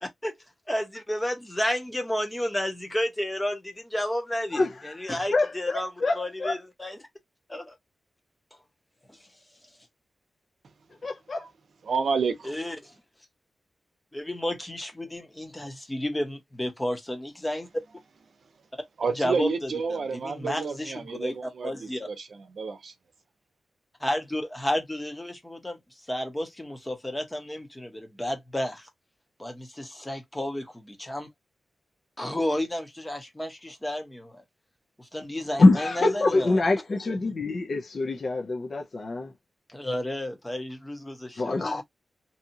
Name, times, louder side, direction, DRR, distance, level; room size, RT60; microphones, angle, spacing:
voice 1, 0.0-0.4 0.7-7.1 7.5-7.7 9.1-9.2 12.4-12.9 14.1-17.7 18.7-18.8 19.1-22.1 24.0-28.9 29.4-31.3 32.2-34.4 35.0-36.6 39.7-41.8, left 1 dB, 10° left, 0.9 m, -32 dB
voice 2, 4.5-6.5 11.0-11.4 35.6-39.3 41.4-41.8, left 2 dB, 40° left, 0.5 m, -24 dB
voice 3, 11.8-12.5 19.0-22.9, right 5 dB, 60° right, 0.7 m, -30 dB
2.7 x 2.4 x 2.7 m
wide cardioid pair, 160°, 0 cm